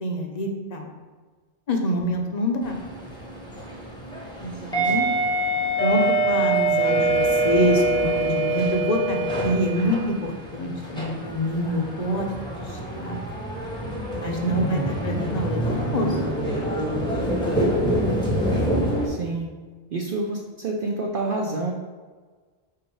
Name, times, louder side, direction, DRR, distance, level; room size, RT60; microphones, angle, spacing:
voice 1, 0.0-0.9 1.7-2.8 4.4-5.1 5.8-13.2 14.1-16.2, equal, 40° left, 2 dB, 0.8 m, -26 dB
sound 1, 2.6-19.1, right 1 dB, 5° left, 0.9 m, -25 dB
voice 2, 14.5-15.0 19.0-19.5 19.9-21.7, right 2 dB, 55° right, -1 dB, 0.8 m, -28 dB
4.7 x 4.0 x 5.3 m, 1.4 s
omnidirectional pair, 1.2 m